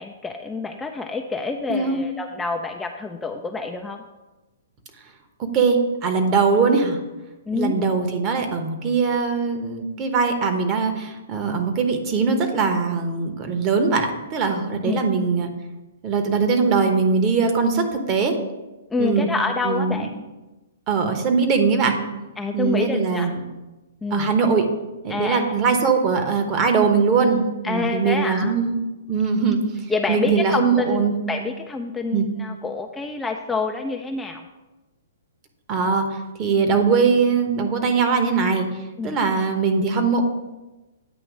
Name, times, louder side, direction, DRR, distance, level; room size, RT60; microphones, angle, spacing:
voice 1, 0.0-4.0 7.5-7.8 14.8-15.1 18.9-20.1 22.4-23.3 24.0-24.4 25.1-25.5 27.6-28.5 29.9-34.4 39.0-39.2, left 3 dB, 10° left, 3 dB, 0.4 m, -27 dB
voice 2, 1.7-2.0 5.5-7.0 7.5-15.5 16.0-18.4 19.0-19.3 19.6-20.1 20.9-21.9 22.5-23.4 24.1-24.7 25.0-28.8 29.1-29.6 30.1-31.2 32.1-32.3 35.7-38.7 39.0-40.2, right 5 dB, 30° right, 5 dB, 1.0 m, -21 dB
9.0 x 3.0 x 6.1 m, 1.1 s
hypercardioid pair, 130°, 0 cm